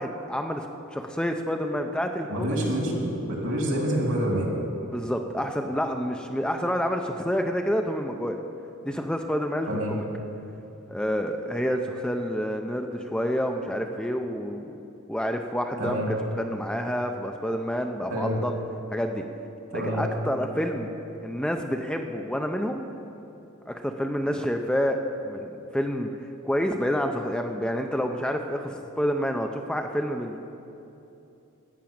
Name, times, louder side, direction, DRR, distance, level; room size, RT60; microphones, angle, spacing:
voice 1, 0.0-2.6 4.8-8.4 8.8-10.1 10.9-14.7 15.1-18.6 18.9-19.2 19.7-20.9 21.2-22.9 23.7-26.1 26.4-30.4, equal, 5° left, 4 dB, 0.4 m, -28 dB
voice 2, 2.3-4.5 9.7-9.9 15.8-16.1 18.1-18.4 19.7-20.0, right 1 dB, 70° right, -1 dB, 2.5 m, -27 dB
13.5 x 6.0 x 8.7 m, 2.8 s
head